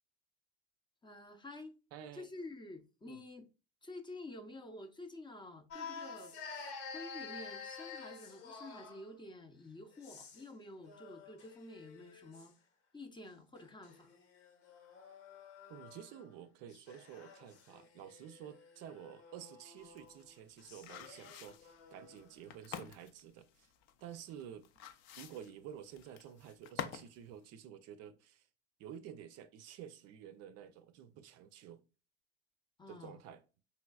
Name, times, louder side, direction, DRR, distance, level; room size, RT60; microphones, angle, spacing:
voice 1, 1.0-1.8 2.1-3.5 3.8-12.5 12.9-14.1 32.8-33.1, left 2 dB, 15° left, 0.6 m, -50 dB
voice 2, 1.9-2.3 3.1-3.2 15.7-23.7 24.0-24.7 25.2-28.5 28.8-31.8 32.9-33.4, right 9 dB, 50° right, 0.5 m, -51 dB
sound 1, 5.7-9.1 9.9-10.5 10.8-12.5 13.6-16.3 16.7-22.3, left 5 dB, 70° left, 1.1 m, -51 dB
sound 2, 19.8-27.1 27.4-27.5, left 8 dB, 55° left, 0.6 m, -48 dB
5.4 x 3.1 x 2.3 m
hypercardioid pair, 80°, 32 cm